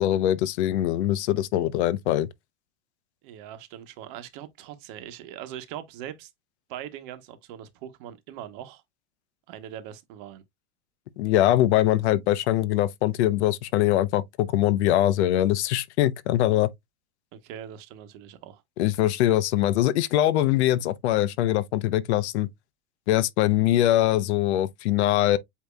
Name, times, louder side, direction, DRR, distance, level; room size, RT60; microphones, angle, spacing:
voice 1, 0.0-2.3 11.2-16.7 18.8-22.5 23.1-25.4, left 13 dB, 80° left, 0.7 m, -22 dB
voice 2, 3.2-6.3 6.7-8.8 9.5-10.4 17.3-18.6, right 10 dB, 50° right, 1.0 m, -41 dB
8.3 x 2.8 x 2.3 m
supercardioid pair, 165°, 33 cm